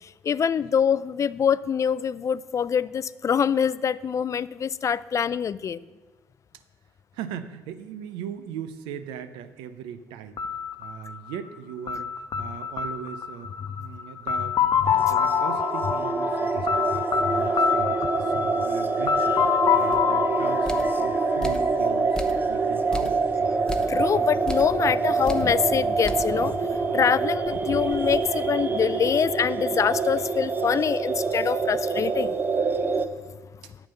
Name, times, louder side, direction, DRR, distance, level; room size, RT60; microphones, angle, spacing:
voice 1, 0.2-5.8 17.2-17.5 18.5-18.6 23.8-32.4, left 7 dB, 45° left, 18 dB, 0.4 m, -25 dB
voice 2, 7.1-10.4 10.8-12.1 12.4-13.5 13.8-16.9 17.3-19.4 19.7-23.2 33.6-33.7, right 9 dB, 85° right, 11 dB, 0.7 m, -39 dB
sound 1, 10.4-22.2, left 7 dB, 60° left, 0.8 m, -27 dB
sound 2, 14.9-33.1, right 4 dB, 25° right, 0.8 m, -26 dB
sound 3, 19.9-20.1 20.6-21.0 21.4-21.7 22.1-22.6 22.9-23.2 23.7-24.0 24.5-24.8 25.3-25.5 26.0-26.4 26.8-26.9 27.3-28.8, left 2 dB, 10° left, 0.9 m, -36 dB
8.9 x 7.2 x 6.6 m, 1.2 s
supercardioid pair, 65°, 8 cm